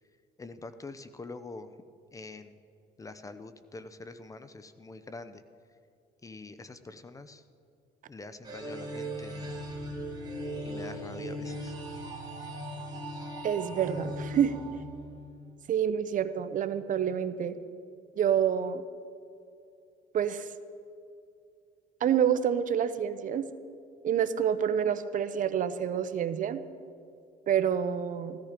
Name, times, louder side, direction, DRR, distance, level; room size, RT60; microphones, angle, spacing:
voice 1, 0.4-1.7 2.1-2.6 3.0-5.4 6.2-7.4 8.1-9.5 10.6-11.8, left 3 dB, 20° left, 11 dB, 0.7 m, -45 dB
sound 1, 8.4-15.4, equal, 25° right, 3.2 m, -38 dB
voice 2, 13.4-14.6 15.7-17.6 18.2-18.8 20.1-20.5 22.0-23.5 24.0-26.6 27.5-28.4, right 8 dB, 50° right, 12 dB, 0.7 m, -27 dB
15.5 x 14.0 x 5.1 m, 2.4 s
cardioid pair, 110°, 17 cm